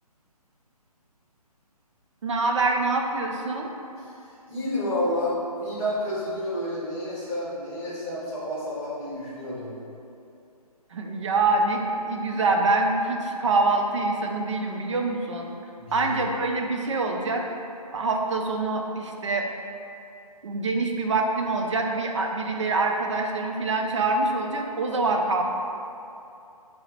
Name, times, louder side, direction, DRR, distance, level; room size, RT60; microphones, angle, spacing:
voice 1, 2.2-3.7 10.9-15.5 15.9-17.4 17.9-19.5 20.4-25.4, right 3 dB, 50° right, 2 dB, 0.4 m, -25 dB
voice 2, 4.0-9.8 15.8-16.2, left 1 dB, 15° left, -9 dB, 1.0 m, -30 dB
3.8 x 2.0 x 4.1 m, 2.7 s
figure-of-eight pair, 140°, 20 cm